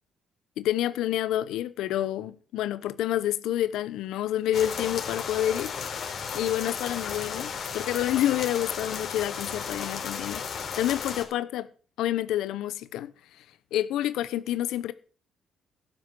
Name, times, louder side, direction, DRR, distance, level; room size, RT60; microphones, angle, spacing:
voice 1, 0.6-5.7 6.3-10.4 10.8-11.7 12.0-13.1 13.4-13.5 13.7-14.9, left 12 dB, 90° left, 0.9 m, -28 dB
sound 1, 4.5-11.2, left 6 dB, 55° left, 3.3 m, -34 dB
12.0 x 8.8 x 6.3 m
cardioid pair, 90°, 0 cm